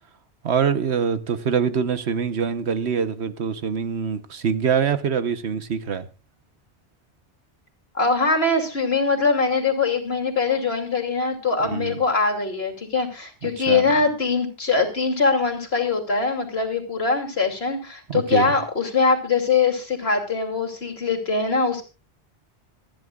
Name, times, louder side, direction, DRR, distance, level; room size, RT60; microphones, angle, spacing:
voice 1, 0.4-6.1 11.6-12.0 13.4-13.9 18.1-18.5, right 7 dB, 90° right, 1.3 m, -24 dB
voice 2, 7.9-21.8, left 4 dB, 70° left, 3.2 m, -22 dB
26.5 x 10.5 x 2.4 m
omnidirectional pair, 1.1 m